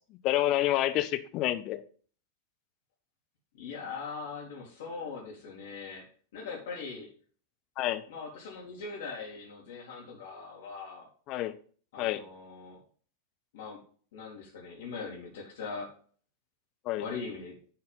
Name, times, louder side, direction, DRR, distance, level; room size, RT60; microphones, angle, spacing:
voice 1, 0.1-1.8 7.8-8.0 11.3-11.5 12.0-12.2 16.8-17.0, left 14 dB, 40° left, 9 dB, 0.8 m, -28 dB
voice 2, 3.6-6.1 6.3-7.1 8.1-11.1 11.9-12.8 13.5-13.8 14.1-15.9 17.0-17.6, left 4 dB, 55° left, -3 dB, 2.4 m, -41 dB
10.5 x 4.0 x 5.6 m, 0.43 s
figure-of-eight pair, 90°, 0 cm